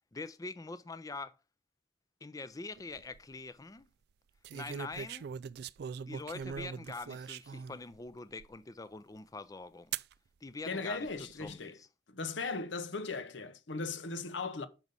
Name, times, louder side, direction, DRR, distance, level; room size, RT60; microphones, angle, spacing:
voice 1, 0.1-1.3 2.2-3.9 4.5-5.3 6.1-9.9 10.4-11.1 11.4-11.9, left 3 dB, 20° left, 0.4 m, -44 dB
sound 1, 2.8-3.2 4.4-7.8 8.4-8.5 9.9-10.1 11.0-11.5, right 7 dB, 60° right, 0.3 m, -41 dB
voice 2, 10.7-11.8 12.1-14.7, left 4 dB, 90° left, 0.9 m, -38 dB
6.0 x 5.3 x 6.8 m
head